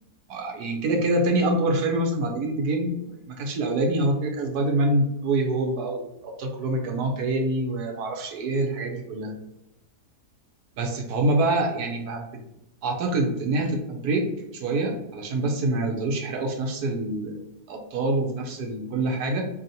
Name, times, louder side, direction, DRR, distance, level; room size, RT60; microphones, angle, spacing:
voice 1, 0.3-9.3 10.8-12.4 12.8-14.3 14.5-17.4 17.7-19.4, right 2 dB, 80° right, 2 dB, 1.3 m, -26 dB
4.1 x 2.9 x 2.7 m, 0.89 s
omnidirectional pair, 1.7 m